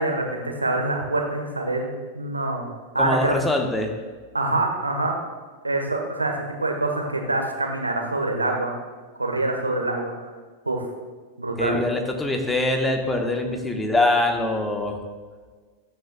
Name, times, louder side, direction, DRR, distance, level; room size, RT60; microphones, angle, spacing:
voice 1, 0.0-2.6 2.9-3.4 4.3-5.2 5.6-8.8 9.2-10.1 10.6-10.9 11.4-11.8, right 2 dB, 80° right, 2 dB, 1.2 m, -25 dB
voice 2, 3.0-3.9 11.6-15.0, left 2 dB, 10° left, 3 dB, 1.1 m, -23 dB
13.0 x 9.0 x 2.3 m, 1.5 s
figure-of-eight pair, 90°, 0 cm